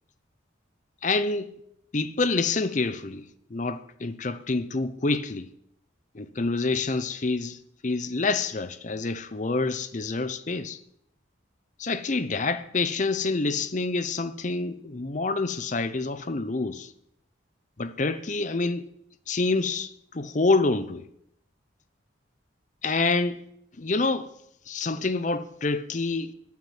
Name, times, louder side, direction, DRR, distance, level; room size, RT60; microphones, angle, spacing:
voice 1, 1.0-1.5 1.9-5.5 6.1-7.6 7.8-10.8 11.8-16.9 17.8-18.9 19.3-21.1 22.8-23.4 23.8-24.3 24.7-26.3, left 3 dB, 40° left, 0.7 m, -27 dB
11.5 x 6.0 x 9.2 m
head